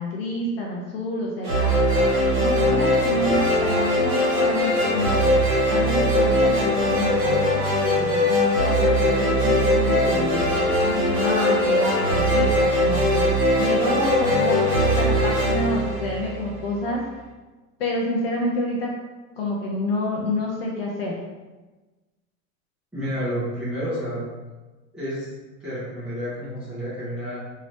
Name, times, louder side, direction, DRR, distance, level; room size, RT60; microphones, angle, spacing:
voice 1, 0.0-1.8 2.4-5.3 5.7-10.4 10.8-13.2 13.6-17.0 17.8-18.9 19.4-21.2, left 1 dB, 45° left, -2 dB, 0.4 m, -28 dB
sound 1, 1.4-16.7, equal, 35° right, 1.5 m, -21 dB
voice 2, 22.9-24.2 24.9-25.3 25.6-27.3, equal, ahead, -14 dB, 0.7 m, -30 dB
3.2 x 2.7 x 3.0 m, 1.2 s
supercardioid pair, 180°, 41 cm